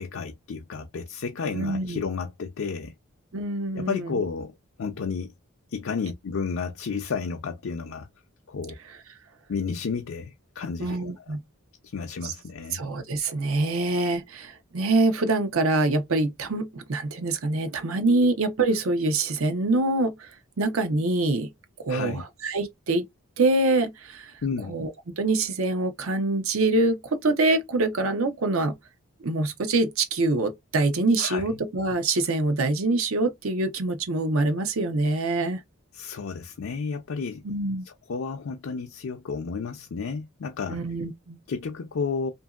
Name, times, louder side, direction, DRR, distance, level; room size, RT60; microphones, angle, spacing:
voice 1, 0.0-2.9 3.7-5.3 5.7-8.1 8.5-8.7 9.5-11.4 11.8-12.8 21.9-22.2 24.4-24.7 31.2-31.6 35.9-37.4 37.8-40.8 41.5-42.3, left 5 dB, 65° left, 0.5 m, -32 dB
voice 2, 1.5-2.0 3.3-4.1 10.8-11.4 12.2-12.3 12.7-20.3 20.6-21.5 21.8-23.0 23.4-24.3 24.7-28.8 29.2-35.6 37.4-37.8 40.7-41.4, right 2 dB, 75° right, 0.7 m, -25 dB
2.8 x 2.6 x 2.3 m
head